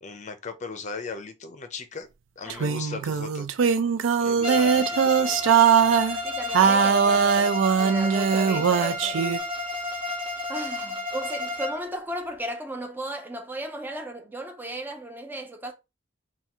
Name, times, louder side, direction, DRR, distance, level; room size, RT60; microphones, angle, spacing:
voice 1, 0.0-2.1 2.4-3.5 4.2-5.5 7.0-7.3, left 4 dB, 35° left, 0.6 m, -38 dB
voice 2, 2.4-2.8 4.4-4.9 6.2-9.4 10.5-15.7, right 1 dB, 10° right, 0.6 m, -36 dB
sound 1, 2.5-6.2 6.5-9.4, right 7 dB, 70° right, 0.4 m, -21 dB
Bowed string instrument, 4.4-11.9, left 2 dB, 25° right, 1.1 m, -31 dB
3.6 x 2.3 x 4.3 m
head